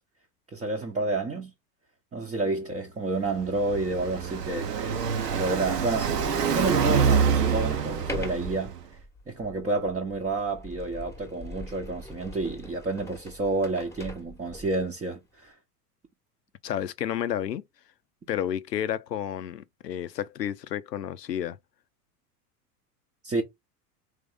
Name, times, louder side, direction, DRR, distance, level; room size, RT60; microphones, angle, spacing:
voice 1, 0.5-1.5 2.1-5.0 5.3-6.1 6.5-8.7 9.3-15.6 23.2-23.4, right 2 dB, 15° right, 0.8 m, -30 dB
Car passing by, 3.2-8.8, right 6 dB, 85° right, 0.9 m, -26 dB
Sliding door, 3.6-3.7 4.4-4.5 4.9-14.9, left 1 dB, 5° left, 1.1 m, -42 dB
voice 2, 16.6-17.6 18.3-21.6, left 10 dB, 90° left, 0.6 m, -31 dB
3.6 x 3.1 x 3.5 m
hypercardioid pair, 95°, 47 cm